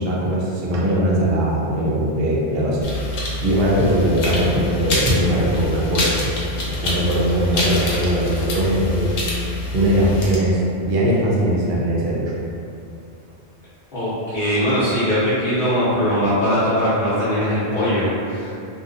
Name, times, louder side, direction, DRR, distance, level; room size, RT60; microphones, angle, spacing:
voice 1, 0.0-2.8 3.1-9.1 9.7-12.3, equal, 65° right, -4 dB, 0.8 m, -20 dB
sound 1, 2.8-10.4, left 1 dB, 85° left, 0.9 m, -26 dB
voice 2, 13.9-18.5, equal, 60° left, -13 dB, 0.9 m, -20 dB
2.6 x 2.3 x 2.5 m, 2.5 s
omnidirectional pair, 1.1 m